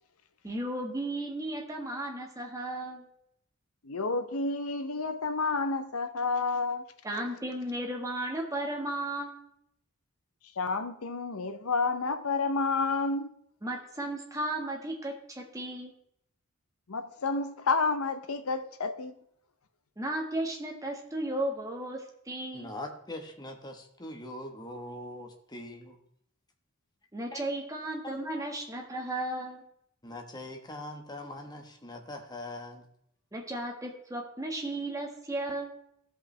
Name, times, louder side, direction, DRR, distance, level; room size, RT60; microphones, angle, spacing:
voice 1, 0.4-3.1 7.0-9.5 13.6-15.9 20.0-22.7 27.1-29.6 33.3-35.8, right 1 dB, 15° right, 1.5 m, -35 dB
voice 2, 3.8-6.8 10.6-13.3 16.9-19.1, left 4 dB, 75° left, 0.8 m, -30 dB
voice 3, 22.5-26.0 27.3-27.4 28.0-28.1 30.0-32.8, left 1 dB, 20° left, 1.2 m, -42 dB
15.5 x 5.6 x 3.3 m
head